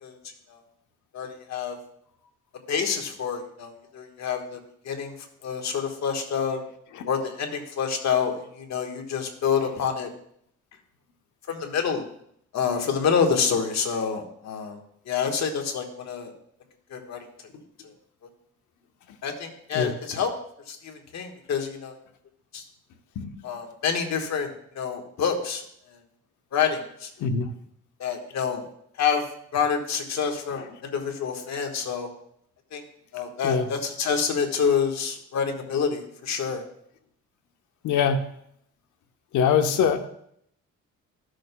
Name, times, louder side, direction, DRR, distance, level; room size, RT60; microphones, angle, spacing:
voice 1, 1.1-1.8 2.7-4.6 4.8-5.1 5.4-6.6 7.1-10.1 11.5-12.0 12.5-14.8 15.1-16.3 16.9-17.2 19.2-20.3 20.7-21.9 22.5-22.6 23.4-24.5 24.7-25.6 26.5-27.1 28.0-28.6 29.0-29.2 29.5-32.1 32.7-32.8 33.1-36.6, left 6 dB, 60° left, 4 dB, 1.4 m, -27 dB
voice 2, 27.2-27.5 30.6-30.7 33.4-33.7 37.8-38.2 39.3-40.1, left 6 dB, 80° left, 8 dB, 0.9 m, -23 dB
13.5 x 6.4 x 2.2 m, 0.69 s
cardioid pair, 90°, 30 cm